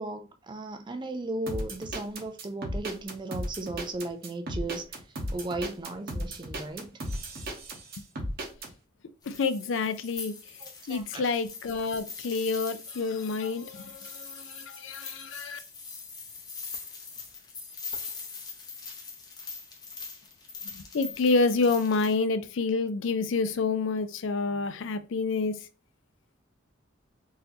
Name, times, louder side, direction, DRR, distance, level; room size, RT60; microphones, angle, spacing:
voice 1, 0.0-4.8 5.3-7.0 10.6-11.2, right 2 dB, 25° right, 0.4 m, -36 dB
sound 1, 1.5-8.7, equal, 50° right, 1.0 m, -35 dB
sound 2, 9.2-22.1, left 4 dB, 20° left, 0.7 m, -42 dB
voice 2, 9.3-10.3 10.9-15.6 20.7-25.5, left 4 dB, 70° left, 0.4 m, -28 dB
4.0 x 2.7 x 2.8 m
head